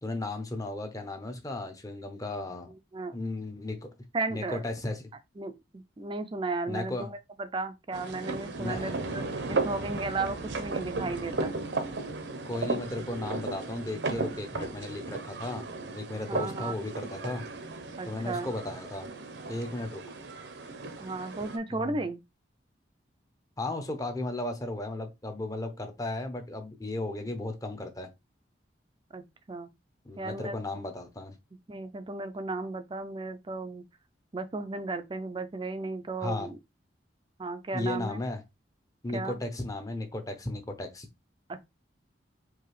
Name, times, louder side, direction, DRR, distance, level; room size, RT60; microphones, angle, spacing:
voice 1, 0.0-2.7 3.1-3.9 4.3-5.1 6.7-7.1 8.6-8.9 12.4-15.6 15.9-17.4 18.1-19.1 19.5-20.0 21.7-22.0 23.6-28.1 30.0-31.3 36.2-36.5 37.7-38.4 39.0-41.1, left 2 dB, 20° left, 0.7 m, -35 dB
voice 2, 4.1-4.6 5.4-9.2 9.5-11.6 16.3-16.7 18.0-18.5 21.0-22.2 29.1-29.2 29.5-29.7 30.2-30.6 31.7-33.8 34.3-36.6 37.4-38.2 39.1-39.4 41.5-41.7, right 3 dB, 25° right, 0.4 m, -35 dB
sound 1, 7.9-21.6, right 3 dB, 65° right, 0.7 m, -35 dB
4.7 x 2.8 x 3.1 m
head